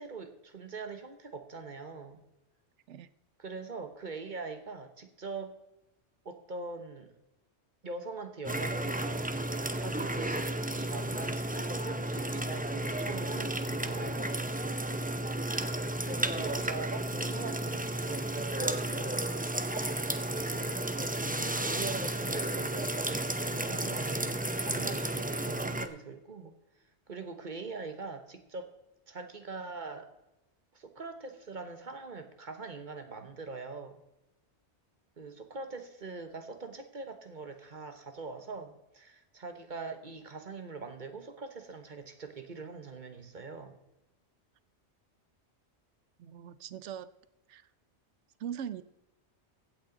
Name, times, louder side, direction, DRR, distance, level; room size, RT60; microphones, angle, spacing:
voice 1, 0.0-2.2 3.4-5.6 6.2-7.1 7.8-14.5 16.0-19.3 21.0-26.5 27.1-28.8 29.1-30.1 30.7-34.0 35.2-43.8, right 4 dB, 45° right, 7 dB, 1.3 m, -42 dB
sound 1, 8.4-25.9, right 1 dB, 10° right, 0.5 m, -33 dB
voice 2, 46.2-47.1 47.5-47.6 48.4-48.8, right 9 dB, 85° right, 15 dB, 1.0 m, -41 dB
16.0 x 8.7 x 3.9 m, 0.94 s
omnidirectional pair, 1.2 m